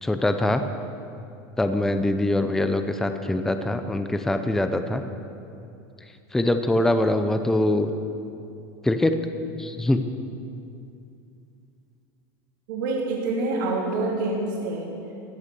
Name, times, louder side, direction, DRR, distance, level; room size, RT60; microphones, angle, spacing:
voice 1, 0.0-0.6 1.6-5.0 6.3-7.9 8.8-9.1 9.6-10.0, left 1 dB, 5° left, 8 dB, 0.6 m, -23 dB
voice 2, 12.7-14.9, right 2 dB, 80° right, -2 dB, 2.5 m, -26 dB
15.0 x 9.6 x 6.8 m, 2.6 s
supercardioid pair, 150°, 10 cm